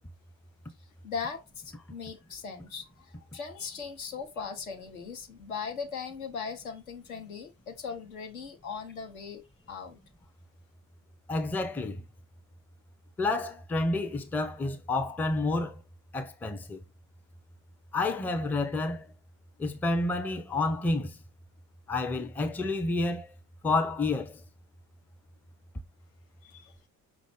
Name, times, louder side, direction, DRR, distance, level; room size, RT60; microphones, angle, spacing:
voice 1, 0.8-10.0 26.4-26.8, left 5 dB, 75° left, 0.9 m, -39 dB
voice 2, 11.3-12.0 13.2-15.8 16.1-16.8 17.9-19.1 19.6-21.2 21.9-23.3 23.6-24.4, left 2 dB, 5° left, 0.4 m, -29 dB
5.1 x 2.5 x 3.4 m
figure-of-eight pair, 55°, 42 cm